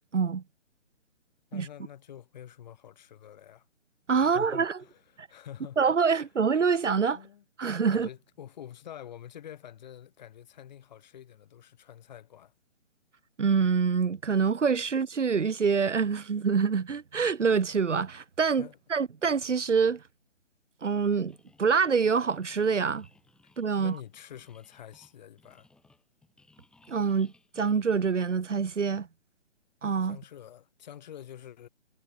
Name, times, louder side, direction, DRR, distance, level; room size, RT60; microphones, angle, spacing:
voice 1, 0.1-0.4 1.5-1.7 4.1-4.8 5.2-5.3 5.8-7.2 7.6-8.1 13.4-20.0 20.8-23.1 23.6-23.9 26.9-29.1 29.8-30.2, right 5 dB, 75° right, 0.8 m, -26 dB
voice 2, 1.5-3.7 4.2-5.0 5.3-5.8 7.1-7.4 7.9-12.5 18.6-18.8 23.7-25.7 30.0-31.7, left 10 dB, 35° left, 5.8 m, -47 dB
sound 1, 21.3-28.7, left 3 dB, ahead, 1.6 m, -62 dB
figure-of-eight pair, 140°, 37 cm